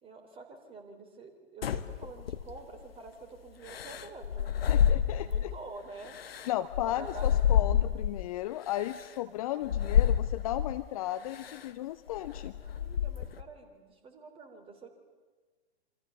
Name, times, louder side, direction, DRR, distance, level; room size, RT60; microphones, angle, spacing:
voice 1, 0.0-4.5 5.2-6.2 6.8-7.5 12.6-14.9, right 3 dB, 15° right, 4 dB, 3.8 m, -48 dB
sound 1, 1.6-2.8 3.7-5.6 6.0-8.3 8.9-9.0 9.6-10.8 11.3-11.7 12.1-13.4, left 9 dB, 60° left, 1.5 m, -28 dB
voice 2, 4.7-5.5 6.5-12.5, left 13 dB, 35° left, 11 dB, 0.8 m, -35 dB
28.0 x 26.0 x 7.0 m, 1.4 s
figure-of-eight pair, 115°, 34 cm